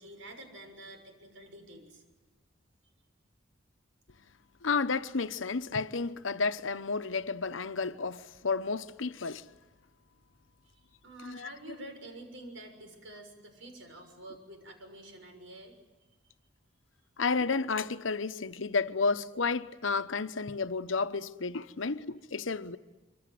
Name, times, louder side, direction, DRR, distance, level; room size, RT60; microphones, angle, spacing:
voice 1, 0.0-2.0 10.7-15.7 21.8-21.9, right 1 dB, 80° right, 6.7 m, -48 dB
voice 2, 4.6-9.4 11.2-11.5 17.2-22.8, left 4 dB, 80° left, 0.9 m, -31 dB
26.5 x 24.5 x 7.7 m
head